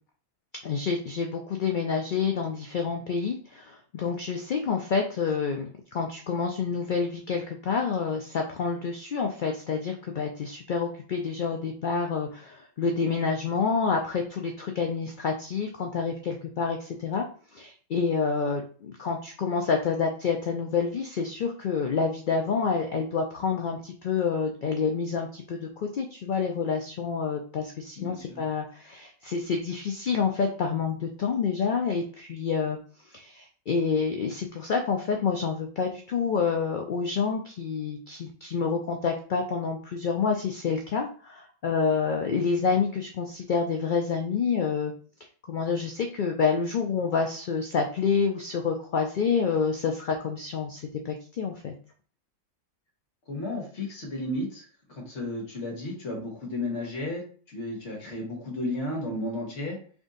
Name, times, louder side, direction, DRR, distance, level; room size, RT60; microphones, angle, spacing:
voice 1, 0.6-17.3 17.5-32.8 33.1-44.9 45.5-51.7, left 5 dB, 75° left, 3 dB, 0.4 m, -28 dB
voice 2, 28.0-28.4 53.3-59.8, left 1 dB, 60° left, -1 dB, 1.5 m, -33 dB
3.6 x 2.6 x 3.8 m, 0.43 s
omnidirectional pair, 1.4 m